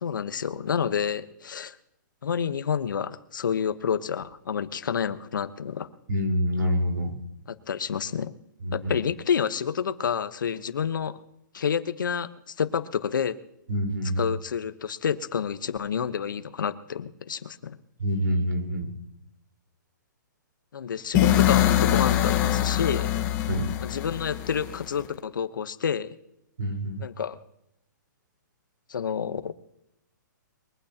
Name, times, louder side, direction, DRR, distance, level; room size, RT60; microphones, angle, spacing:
voice 1, 0.0-1.8 2.2-5.9 7.5-8.3 8.7-11.2 11.5-13.4 14.2-17.8 20.7-23.2 23.8-26.1 27.0-27.4 28.9-29.5, left 7 dB, 85° left, 12 dB, 1.1 m, -29 dB
voice 2, 6.1-7.1 8.6-8.9 13.7-14.3 18.0-18.9 23.5-23.6 26.6-27.0, equal, 75° right, 3 dB, 4.5 m, -26 dB
sound 1, 21.2-25.1, left 12 dB, 20° left, 1.2 m, -23 dB
22.5 x 15.5 x 2.9 m, 0.83 s
hypercardioid pair, 170°, 10 cm